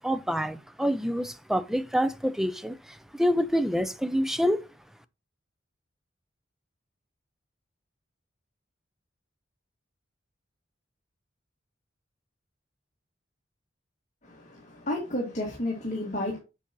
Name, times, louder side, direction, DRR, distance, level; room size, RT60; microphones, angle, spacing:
voice 1, 0.0-4.6, equal, ahead, 0.4 m, -27 dB
voice 2, 14.2-16.4, left 1 dB, 40° left, 1.9 m, -32 dB
7.0 x 7.0 x 2.9 m
head